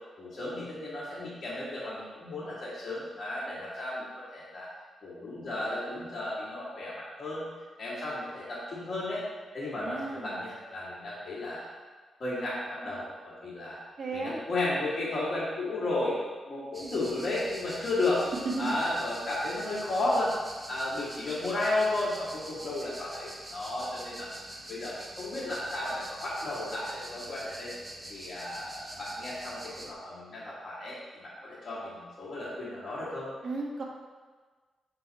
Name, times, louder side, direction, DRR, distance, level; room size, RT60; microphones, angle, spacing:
voice 1, 0.2-4.7 5.0-7.5 7.8-9.2 9.5-11.7 12.2-13.8 14.1-18.2 18.6-20.3 20.7-27.7 28.1-33.3, left 2 dB, 50° left, -10 dB, 1.6 m, -33 dB
voice 2, 9.8-10.4 14.0-14.4 18.4-18.8 33.4-33.8, right 3 dB, 60° right, -1 dB, 1.1 m, -34 dB
sound 1, 16.7-29.9, right 1 dB, 20° right, 0.6 m, -45 dB
6.4 x 3.8 x 4.1 m, 1.4 s
cardioid pair, 90°, 0 cm